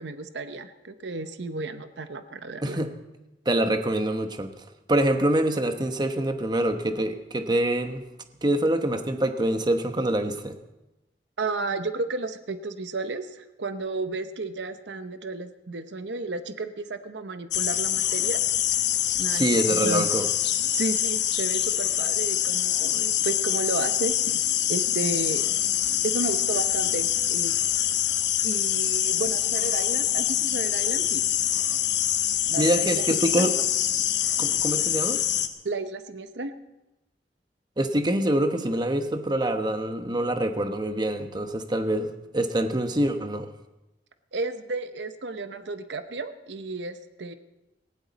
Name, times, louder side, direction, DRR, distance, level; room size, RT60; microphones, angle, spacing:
voice 1, 0.0-2.8 11.4-18.4 19.2-19.6 19.8-20.0 20.7-24.1 24.7-25.4 26.0-27.6 28.4-31.2 32.5-33.5 35.6-36.5 44.3-47.3, right 3 dB, 75° right, 10 dB, 0.8 m, -32 dB
voice 2, 2.6-2.9 3.4-4.5 4.9-8.0 8.4-10.6 19.3-20.3 32.6-33.5 34.4-35.2 37.8-43.5, right 1 dB, 25° right, 7 dB, 1.0 m, -25 dB
sound 1, 17.5-35.5, left 11 dB, 75° left, 1.0 m, -25 dB
19.0 x 16.0 x 4.1 m, 0.97 s
head